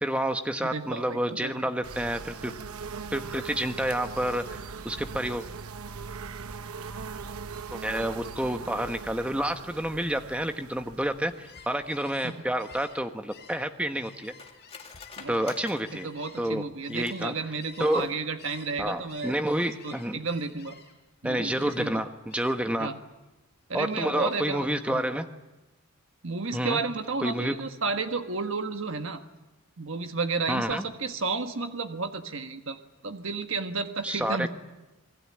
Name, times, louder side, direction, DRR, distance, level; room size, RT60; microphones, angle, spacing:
voice 1, 0.0-2.5 3.1-4.6 4.8-5.4 7.7-14.3 15.3-16.1 16.4-16.6 16.9-17.3 17.8-18.1 18.8-20.2 21.2-22.9 23.7-25.3 26.5-26.8 27.2-27.5 30.5-30.8 34.0-34.5, right 1 dB, 5° right, 7 dB, 1.2 m, -29 dB
voice 2, 0.6-1.7 12.2-12.3 15.2-15.5 15.9-19.4 19.8-20.8 21.2-21.9 22.8-23.0 23.7-25.1 26.2-29.2 29.8-32.8 33.0-34.5, right 4 dB, 65° right, 7 dB, 1.4 m, -32 dB
sound 1, 1.8-12.5, right 5 dB, 85° right, 1.0 m, -40 dB
Gull seagull, 11.3-18.1 18.4-21.1 21.5-22.0 22.3-22.8 23.1-24.6, left 6 dB, 45° left, 3.9 m, -52 dB
Cutlery silverware, 12.9-17.4 17.8-18.5 18.9-19.0 19.3-19.7 20.0-20.2, left 4 dB, 25° left, 2.2 m, -48 dB
27.5 x 20.5 x 8.7 m, 1.0 s
head